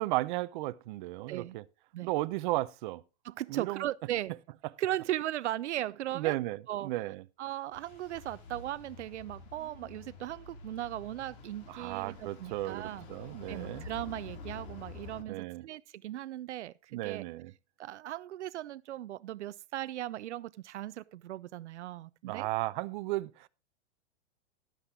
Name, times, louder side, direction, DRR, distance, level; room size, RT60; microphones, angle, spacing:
voice 1, 0.0-1.6 2.0-3.0 3.5-3.8 6.1-7.2 11.7-13.9 15.3-15.7 16.9-17.5 22.2-23.5, right 18 dB, 45° right, 0.7 m, -34 dB
voice 2, 1.3-1.6 1.9-2.1 3.2-4.3 4.8-6.4 6.7-6.9 7.4-13.1 13.5-17.2 17.8-22.5, right 13 dB, 80° right, 0.6 m, -37 dB
sound 1, 7.7-15.2, left 3 dB, 50° left, 2.3 m, -48 dB
12.0 x 9.8 x 3.7 m
hypercardioid pair, 140°, 34 cm